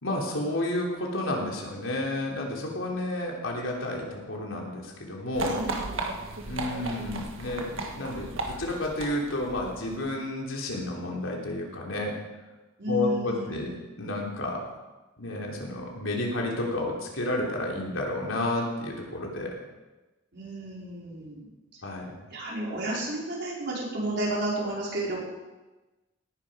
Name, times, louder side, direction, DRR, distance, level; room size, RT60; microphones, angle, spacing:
voice 1, 0.0-5.6 6.4-12.1 12.9-13.7 14.0-14.6 15.2-19.5 21.8-22.1, left 1 dB, 85° left, -1 dB, 3.4 m, -31 dB
sound 1, 5.3-10.1, right 2 dB, 85° right, 1.7 m, -35 dB
voice 2, 5.4-6.1 12.8-13.8 20.3-21.5 22.3-25.2, right 1 dB, 60° right, -4 dB, 4.9 m, -32 dB
18.0 x 11.0 x 5.1 m, 1.1 s
head